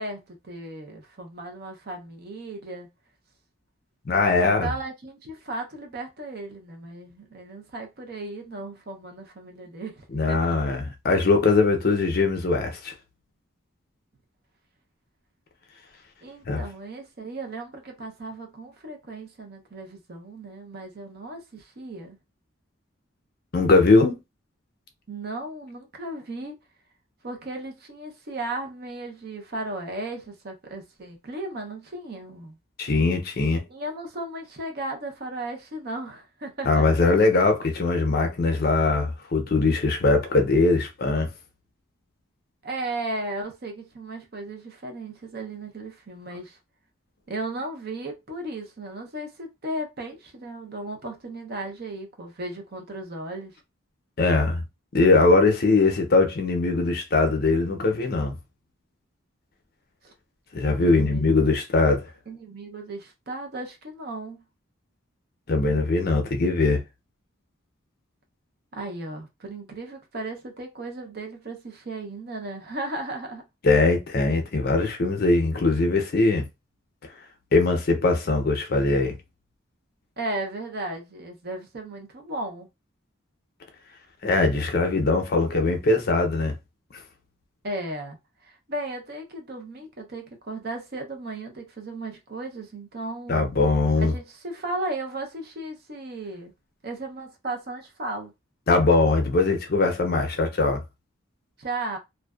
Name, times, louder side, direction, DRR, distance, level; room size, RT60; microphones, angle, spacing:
voice 1, 0.0-2.9 4.4-10.6 16.2-22.2 25.1-26.6 27.2-32.6 33.7-36.8 42.6-46.6 47.3-53.5 60.0-60.1 60.8-61.4 62.3-64.4 68.7-73.4 80.2-82.7 87.6-88.2 88.4-93.5 94.0-96.5 96.8-98.3 101.6-102.0, right 2 dB, 50° right, 0.6 m, -35 dB
voice 2, 4.1-4.7 10.1-12.9 16.5-16.6 23.5-24.2 32.8-33.6 36.7-41.3 54.2-54.6 54.9-58.4 60.5-62.0 65.5-66.8 73.6-76.5 77.5-79.1 84.2-86.6 93.3-94.1 98.7-100.8, left 3 dB, 45° left, 0.5 m, -21 dB
2.5 x 2.2 x 2.3 m
head